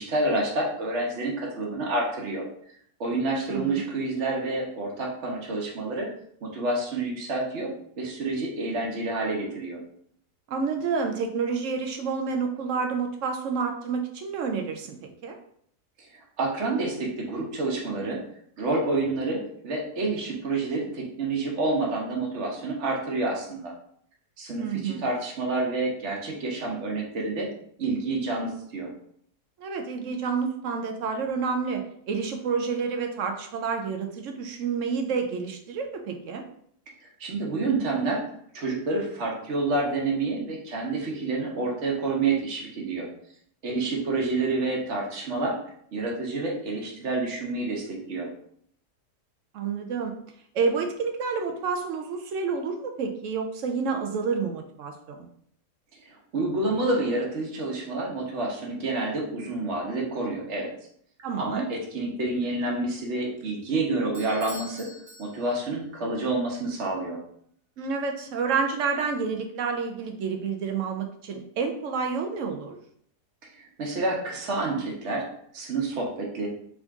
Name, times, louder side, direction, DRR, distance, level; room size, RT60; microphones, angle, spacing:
voice 1, 0.0-2.4 3.0-6.1 6.4-7.7 8.0-9.8 16.4-18.2 18.6-23.7 24.4-27.5 27.8-28.9 37.0-38.2 38.5-43.1 43.6-45.6 45.9-48.3 56.1-60.7 61.4-64.9 65.2-67.2 73.5-75.2 75.5-76.5, right 2 dB, 50° right, -1 dB, 1.2 m, -28 dB
voice 2, 3.5-3.8 10.5-15.4 24.6-25.1 29.6-36.4 49.5-50.1 50.5-55.3 61.2-61.7 67.8-72.8, right 5 dB, 65° right, 4 dB, 0.8 m, -29 dB
Bell / Doorbell, 64.1-65.9, equal, 85° right, 1.7 m, -45 dB
3.8 x 3.6 x 3.5 m, 0.66 s
omnidirectional pair, 1.7 m